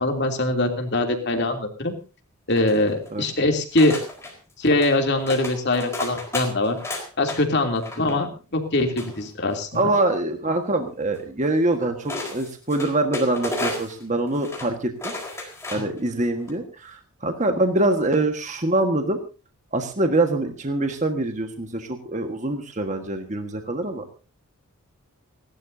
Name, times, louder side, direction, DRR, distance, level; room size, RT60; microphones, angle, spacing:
voice 1, 0.0-2.0 2.5-4.0 4.6-6.8 7.2-8.3 8.5-9.9 15.7-15.8, left 2 dB, 50° left, 3 dB, 3.0 m, -22 dB
sound 1, 2.5-3.2 3.8-4.3 4.7-5.0 5.3-7.4 7.7-8.1 9.0-9.8 11.1-11.2 12.1-14.0 14.3-14.7 15.0-16.0 16.4-16.5, left 1 dB, 10° left, 4.4 m, -32 dB
voice 2, 9.7-19.2 19.7-24.0, right 2 dB, 35° right, 5 dB, 1.6 m, -24 dB
29.0 x 12.0 x 2.8 m, 0.33 s
head